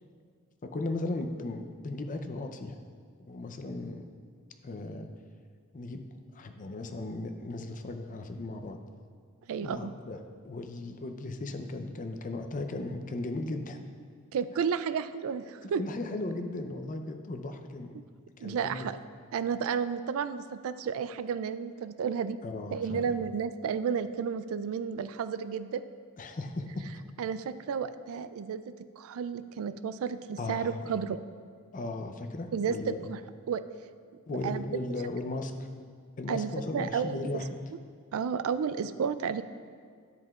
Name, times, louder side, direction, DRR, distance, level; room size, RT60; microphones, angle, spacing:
voice 1, 0.6-2.8 3.2-4.1 4.6-5.1 5.7-6.0 6.3-8.8 9.6-10.2 10.4-13.8 15.6-18.0 18.4-18.9 22.4-23.1 26.2-26.8 30.4-30.9 31.7-33.0 34.3-35.7 36.2-37.4, left 2 dB, 35° left, 6 dB, 0.5 m, -36 dB
voice 2, 9.5-9.9 14.3-15.8 18.4-19.0 19.3-22.4 22.7-25.8 27.2-28.6 29.0-31.2 32.5-33.2 33.5-33.6 34.4-34.6 36.3-37.4 38.1-39.4, right 6 dB, 70° right, 13 dB, 0.3 m, -32 dB
10.5 x 7.7 x 2.4 m, 2.1 s
head